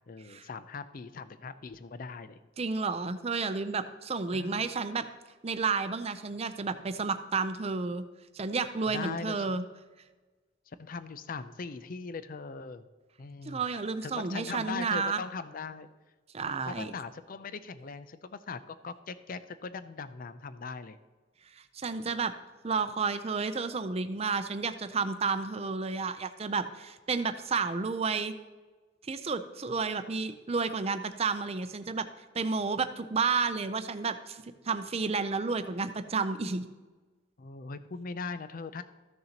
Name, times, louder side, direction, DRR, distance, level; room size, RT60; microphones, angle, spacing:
voice 1, 0.1-2.4 4.3-4.6 8.9-9.6 10.7-12.8 13.2-13.6 14.0-15.9 16.4-21.0 37.4-38.8, left 4 dB, 50° left, 12 dB, 0.5 m, -40 dB
voice 2, 2.6-5.1 5.4-8.0 8.3-9.6 13.5-15.2 16.3-16.9 21.7-22.3 22.6-28.3 29.1-32.1 32.3-36.7, right 4 dB, 35° right, 10 dB, 0.6 m, -31 dB
14.0 x 6.6 x 2.9 m, 1.3 s
head